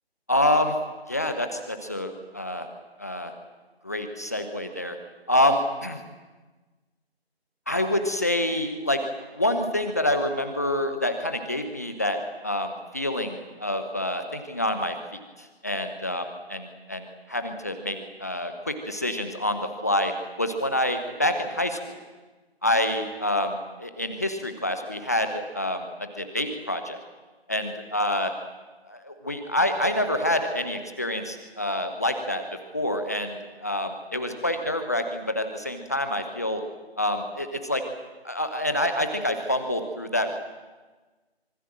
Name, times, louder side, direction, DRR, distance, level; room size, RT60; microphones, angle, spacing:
voice 1, 0.3-0.8 1.1-2.7 3.0-3.3 3.8-5.0 5.3-6.0 7.7-9.0 9.3-15.0 15.4-16.2 16.5-20.1 20.4-22.0 22.6-27.0 27.5-28.3 28.9-32.4 32.7-36.6 37.0-37.8 38.2-40.3, left 1 dB, 15° left, 7 dB, 0.9 m, -27 dB
26.0 x 23.5 x 7.5 m, 1.3 s
figure-of-eight pair, 160°, 32 cm